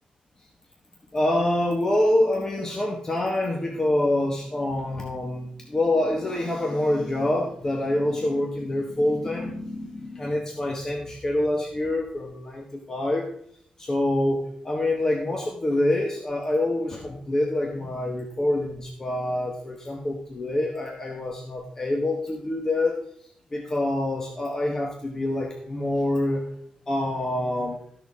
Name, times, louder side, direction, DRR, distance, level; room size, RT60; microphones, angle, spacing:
voice 1, 1.1-13.3 13.8-23.0 23.5-26.5 26.9-27.8, left 1 dB, 25° left, 1 dB, 1.2 m, -26 dB
13.5 x 6.4 x 3.6 m, 0.65 s
wide cardioid pair, 155°, 2 cm